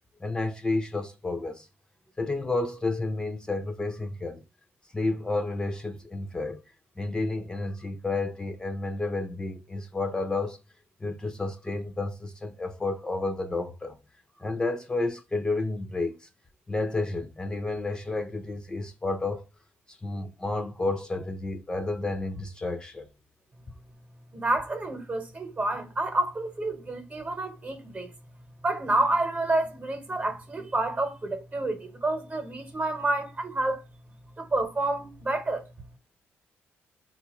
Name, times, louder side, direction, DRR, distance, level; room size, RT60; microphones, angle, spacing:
voice 1, 0.2-1.7 2.2-4.4 4.9-6.6 7.0-10.6 11.0-14.0 14.4-16.3 16.7-19.4 19.9-23.1, left 2 dB, 15° left, 0.5 m, -31 dB
voice 2, 24.3-28.1 28.6-33.8 34.4-35.7, right 2 dB, 30° right, 1.0 m, -29 dB
3.8 x 2.4 x 2.9 m
cardioid pair, 95°, 5 cm